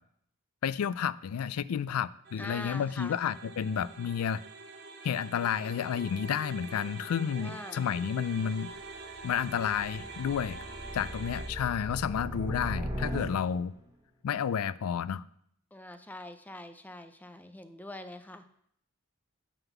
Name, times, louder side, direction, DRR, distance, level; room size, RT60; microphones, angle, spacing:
voice 1, 0.6-4.4 5.0-8.7 9.2-10.6 10.9-13.7 14.2-15.2, left 8 dB, 80° left, 0.3 m, -31 dB
sound 1, 2.3-11.5, right 3 dB, 50° right, 1.0 m, -45 dB
voice 2, 2.4-3.2 7.4-7.9 15.7-18.4, left 1 dB, 5° left, 0.4 m, -44 dB
sound 2, 8.7-13.8, equal, 15° right, 1.0 m, -39 dB
9.2 x 3.7 x 7.0 m
head